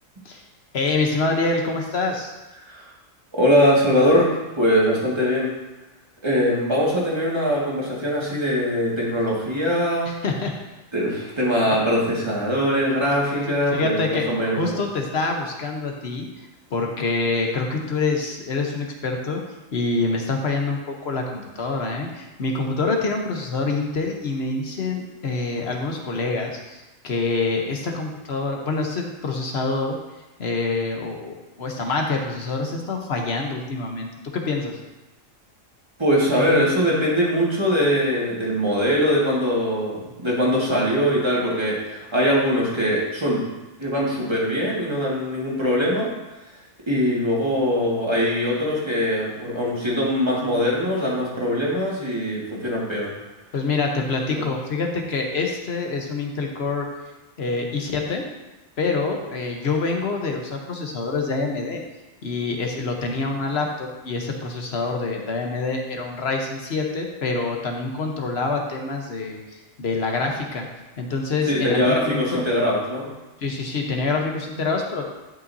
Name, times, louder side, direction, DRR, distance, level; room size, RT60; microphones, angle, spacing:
voice 1, 0.7-2.3 10.1-10.5 13.5-16.3 16.7-19.4 19.7-30.0 30.4-34.8 53.5-56.9 57.4-58.2 58.8-61.8 62.2-70.7 71.0-72.4 73.4-75.1, left 3 dB, 55° left, 2 dB, 1.2 m, -26 dB
voice 2, 3.3-4.3 4.6-5.5 6.2-10.1 10.9-14.8 36.0-43.4 43.8-46.1 46.9-53.1 54.3-54.4 71.5-73.1, equal, 20° right, -5 dB, 1.9 m, -22 dB
12.0 x 5.5 x 2.7 m, 1.1 s
omnidirectional pair, 1.4 m